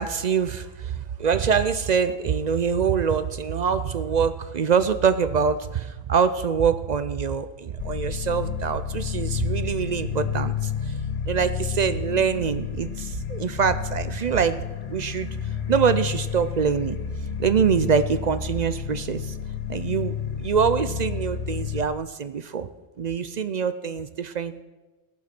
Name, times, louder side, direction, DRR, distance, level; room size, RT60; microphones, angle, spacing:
voice 1, 0.0-10.9 11.3-15.3 15.7-17.0 17.4-19.3 19.7-22.7 23.0-24.6, right 6 dB, 55° right, 12 dB, 0.5 m, -24 dB
sound 1, 7.8-21.8, left 7 dB, 40° left, 0.8 m, -30 dB
18.0 x 7.3 x 5.9 m, 1.2 s
omnidirectional pair, 1.2 m